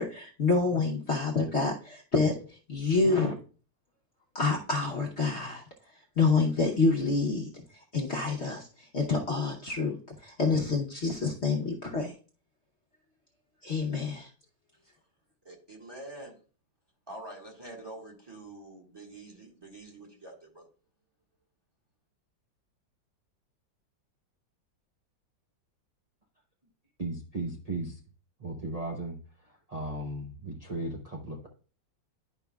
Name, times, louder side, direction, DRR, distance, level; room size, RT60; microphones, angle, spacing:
voice 1, 0.0-2.3 2.7-3.3 4.3-5.6 6.2-7.6 7.9-12.1 13.6-14.3, left 4 dB, 50° left, -1 dB, 0.9 m, -27 dB
voice 2, 15.4-16.4 17.1-20.7, right 2 dB, 15° right, -1 dB, 1.5 m, -46 dB
voice 3, 27.0-28.0 28.4-29.2 29.4-31.5, right 2 dB, 40° right, 0 dB, 0.5 m, -36 dB
11.0 x 5.2 x 2.3 m, 0.38 s
omnidirectional pair, 2.0 m